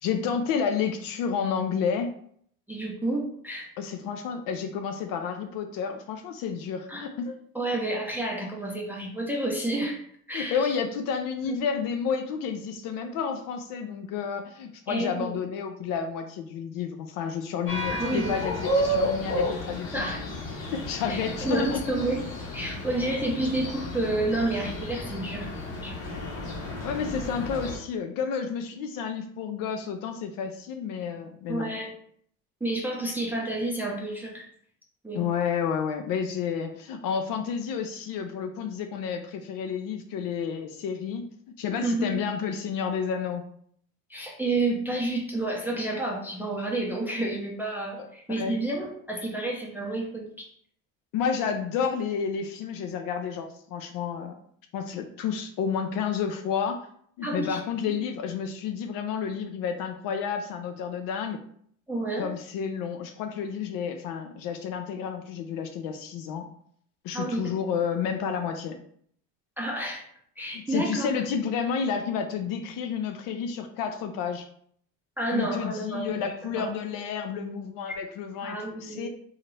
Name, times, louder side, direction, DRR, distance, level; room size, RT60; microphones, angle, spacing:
voice 1, 0.0-2.1 3.8-7.4 10.3-20.1 20.7-21.8 26.2-26.3 26.8-31.7 35.1-41.3 41.6-43.5 48.0-48.6 51.1-54.3 54.7-56.9 57.2-61.4 62.2-66.5 67.0-68.8 70.5-74.5 75.3-79.1, left 6 dB, 60° left, 6 dB, 0.5 m, -30 dB
voice 2, 2.7-3.7 6.9-7.0 7.5-10.0 10.3-10.8 11.4-11.5 14.9-15.3 17.9-18.3 19.9-20.3 21.1-22.2 22.5-26.2 31.5-31.9 32.6-34.5 35.0-35.4 41.8-42.1 44.1-50.5 57.2-57.6 57.9-58.0 61.9-62.3 67.1-67.5 69.6-70.0 70.4-71.1 75.2-76.7 78.4-79.1, right 2 dB, 5° right, -2 dB, 0.5 m, -30 dB
sound 1, 17.7-27.8, equal, 85° left, 1.0 m, -32 dB
2.8 x 2.4 x 3.1 m, 0.63 s
supercardioid pair, 85°, 39 cm